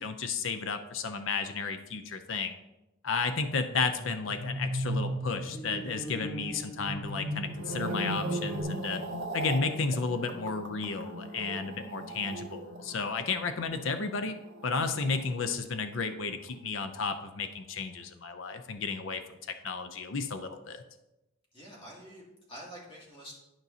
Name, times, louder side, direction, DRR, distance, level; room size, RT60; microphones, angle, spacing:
voice 1, 0.0-2.5 3.0-9.0 9.3-14.4 14.6-19.2 19.6-20.8, left 4 dB, 65° left, 8 dB, 0.5 m, -33 dB
sound 1, 3.6-8.6, equal, 5° left, 2.0 m, -36 dB
sound 2, 7.4-15.9 16.1-16.5, right 2 dB, 70° right, 0.9 m, -39 dB
voice 2, 21.5-23.3, equal, 25° left, -4 dB, 2.4 m, -47 dB
11.5 x 5.3 x 2.8 m, 0.95 s
head